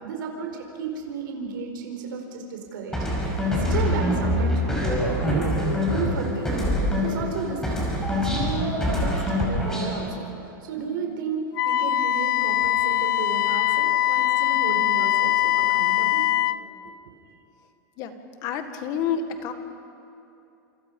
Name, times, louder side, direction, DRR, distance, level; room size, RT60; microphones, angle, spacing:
voice 1, 0.0-5.5 5.9-16.2, right 5 dB, 75° right, 2 dB, 4.6 m, -33 dB
sound 1, 2.9-7.3 7.6-10.0, left 1 dB, 5° left, 5.5 m, -24 dB
Wind instrument woodwind instrument, 11.6-16.6, left 13 dB, 70° left, 0.5 m, -22 dB
voice 2, 18.4-19.5, left 7 dB, 35° left, 7 dB, 1.9 m, -28 dB
29.0 x 28.0 x 5.5 m, 2.8 s
supercardioid pair, 165°, 11 cm